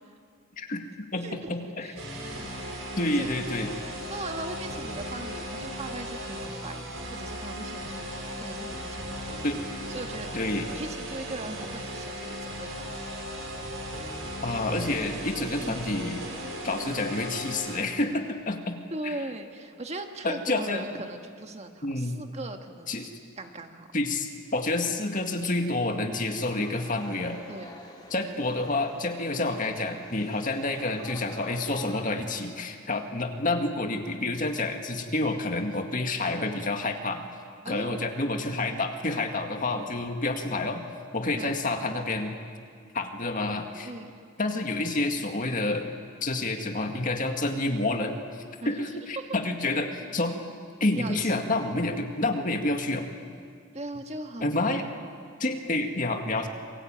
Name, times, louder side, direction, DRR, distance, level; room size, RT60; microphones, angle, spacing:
voice 1, 0.6-1.9 3.0-3.7 9.4-9.6 10.3-10.7 14.4-16.3 16.6-18.8 19.0-19.1 20.2-20.9 21.8-22.2 22.9-23.1 23.9-27.4 28.1-37.2 37.7-40.8 41.1-42.4 42.9-43.9 44.4-45.9 46.2-48.2 48.7-50.4 50.8-53.1 54.4-54.8 55.4-56.5, left 2 dB, 40° left, 4 dB, 2.1 m, -29 dB
voice 2, 1.2-1.5 1.8-2.1 3.1-3.3 4.1-8.1 8.4-9.4 9.9-10.3 10.7-13.0 15.6-15.8 18.9-23.0 23.4-23.9 26.5-26.9 27.5-27.7 37.6-38.1 38.7-38.8 39.7-40.0 41.4-41.6 43.8-44.1 48.6-48.8 49.1-49.3 50.9-51.4 53.7-54.6, right 2 dB, 35° right, 5 dB, 1.6 m, -39 dB
sound 1, 2.0-17.8, equal, 70° right, 5.7 m, -37 dB
sound 2, 26.6-32.1, left 2 dB, 20° left, 3.9 m, -47 dB
28.0 x 22.5 x 9.1 m, 2.2 s
head